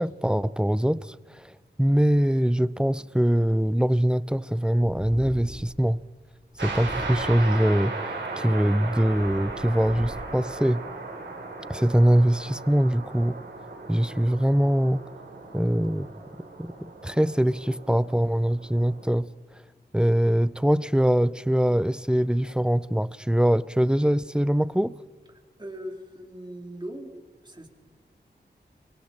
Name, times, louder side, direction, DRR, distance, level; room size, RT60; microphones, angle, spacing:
voice 1, 0.0-1.5 1.8-6.0 6.6-10.8 11.7-13.4 13.9-15.0 15.5-16.1 16.6-19.3 19.5-19.6 19.9-25.0, equal, 5° right, 0.5 m, -23 dB
Purr, 4.8-5.9 6.5-7.6 8.3-10.4, left 1 dB, 20° left, 3.9 m, -41 dB
sound 1, 6.6-19.1, right 3 dB, 85° right, 3.6 m, -37 dB
voice 2, 25.6-27.1 27.4-27.7, equal, 25° right, 3.5 m, -39 dB
26.5 x 22.5 x 4.4 m
wide cardioid pair, 60°, 19 cm